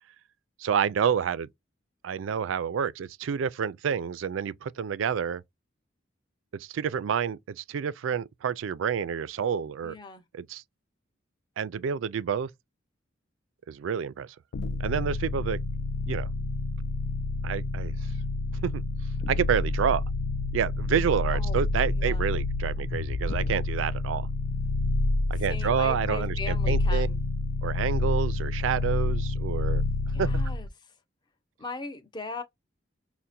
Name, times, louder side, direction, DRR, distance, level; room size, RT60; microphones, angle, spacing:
voice 1, 0.6-1.5 2.0-5.4 6.5-10.0 10.3-10.6 11.6-12.5 13.7-14.3 14.8-15.6 16.1-16.3 17.4-17.9 18.6-18.8 19.3-20.0 20.5-24.3 25.3-27.1 27.6-29.8 30.2-30.4, right 7 dB, 85° right, 0.4 m, -29 dB
voice 2, 9.8-10.2 21.3-21.6 21.9-22.3 25.5-27.2 30.1-30.7 31.6-32.4, left 3 dB, 25° left, 0.6 m, -39 dB
sound 1, 14.5-30.7, left 2 dB, 70° left, 0.4 m, -28 dB
5.5 x 2.1 x 2.6 m
head